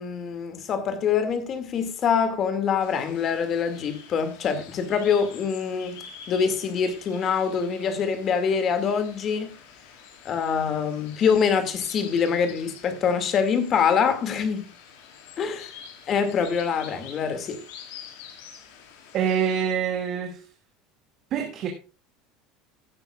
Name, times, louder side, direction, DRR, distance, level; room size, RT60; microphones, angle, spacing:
voice 1, 0.0-6.0 6.3-9.5 10.3-14.7 15.4-15.7 16.1-17.6, left 6 dB, 25° left, 2.1 m, -25 dB
sound 1, 2.8-19.6, left 7 dB, 65° left, 4.9 m, -47 dB
voice 2, 19.1-20.4 21.3-21.7, right 8 dB, 30° right, 2.1 m, -25 dB
16.0 x 9.5 x 2.4 m
cardioid pair, 175°, 0 cm